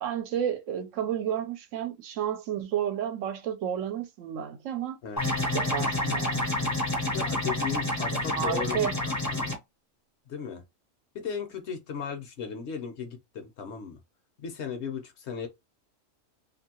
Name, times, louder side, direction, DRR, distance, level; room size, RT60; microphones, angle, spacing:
voice 1, 0.0-5.0 5.5-6.8 8.1-9.0, right 9 dB, 75° right, 0.9 m, -32 dB
sound 1, 5.2-9.5, left 1 dB, 20° left, 0.5 m, -28 dB
voice 2, 7.0-9.5 10.3-10.6 11.1-14.0 14.4-15.5, left 6 dB, 60° left, 0.9 m, -36 dB
2.7 x 2.5 x 2.8 m
omnidirectional pair, 1.4 m